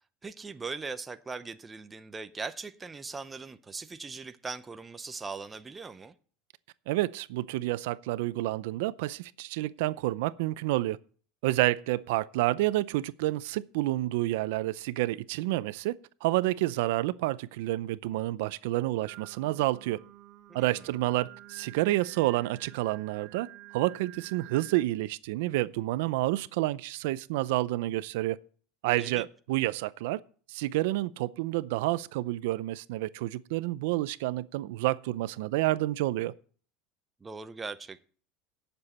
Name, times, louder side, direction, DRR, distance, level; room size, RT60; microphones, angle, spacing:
voice 1, 0.2-6.1 20.5-20.9 29.0-29.3 37.2-38.1, right 4 dB, 10° right, 0.6 m, -40 dB
voice 2, 6.9-11.0 11.4-15.9 16.2-20.0 20.5-23.5 23.7-28.4 28.8-30.2 30.5-36.3, right 17 dB, 70° right, 0.5 m, -29 dB
Singing, 19.1-24.8, right 15 dB, 40° right, 0.8 m, -50 dB
17.5 x 7.0 x 4.2 m
supercardioid pair, 165°, 0 cm